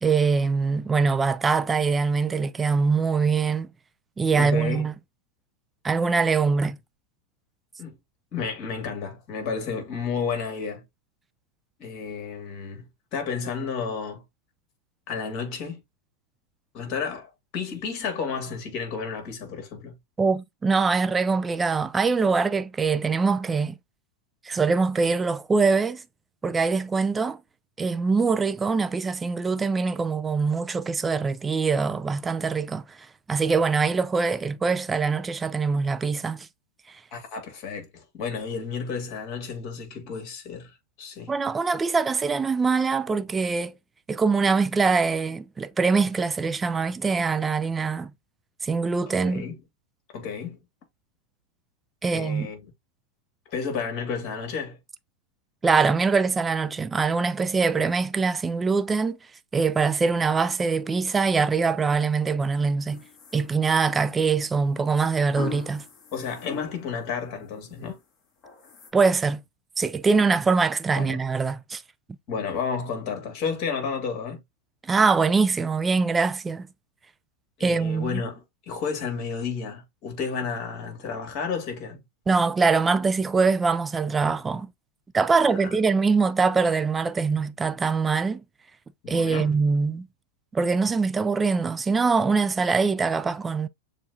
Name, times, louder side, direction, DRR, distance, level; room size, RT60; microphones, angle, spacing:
voice 1, 0.0-3.7 4.2-4.9 5.8-6.8 20.2-23.8 24.4-26.0 26.4-27.4 27.8-32.8 33.3-36.5 41.3-43.7 44.1-48.1 48.6-49.5 52.0-52.5 55.6-59.2 59.5-63.0 63.3-65.8 68.9-69.4 69.8-71.8 74.8-76.7 77.6-78.2 82.3-84.7 85.1-88.4 89.1-90.1 90.5-93.7, right 4 dB, 15° right, 0.4 m, -23 dB
voice 2, 4.3-4.9 7.8-8.0 8.3-10.8 11.8-12.8 13.1-14.2 15.1-15.8 16.7-19.9 37.1-41.3 49.2-49.6 50.1-50.6 52.0-52.6 53.5-54.8 66.1-68.0 71.0-71.2 72.3-74.4 77.6-82.0 85.4-85.7 89.0-89.5, left 5 dB, 50° left, 2.3 m, -32 dB
sound 1, 62.9-64.0 65.4-67.0 67.4-67.9 68.4-68.9, left 7 dB, 35° left, 1.8 m, -39 dB
6.9 x 2.4 x 2.8 m
hypercardioid pair, 105°, 0 cm